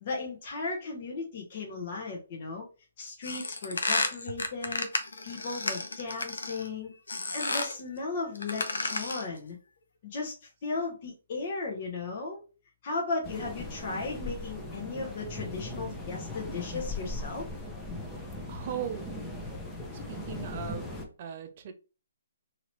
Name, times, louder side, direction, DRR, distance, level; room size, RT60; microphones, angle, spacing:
voice 1, 0.0-2.7 3.0-4.9 5.2-6.9 7.3-9.6 10.0-12.4 12.8-17.5, left 3 dB, 45° left, 0.9 m, -36 dB
sound 1, 3.2-6.7 7.1-7.8 8.3-9.3, left 3 dB, 80° left, 0.6 m, -32 dB
sound 2, 13.2-21.1, left 2 dB, 10° left, 0.7 m, -39 dB
voice 2, 18.5-19.1 20.1-20.9 21.2-21.7, right 8 dB, 45° right, 0.6 m, -38 dB
2.9 x 2.8 x 3.0 m
hypercardioid pair, 140°, 0 cm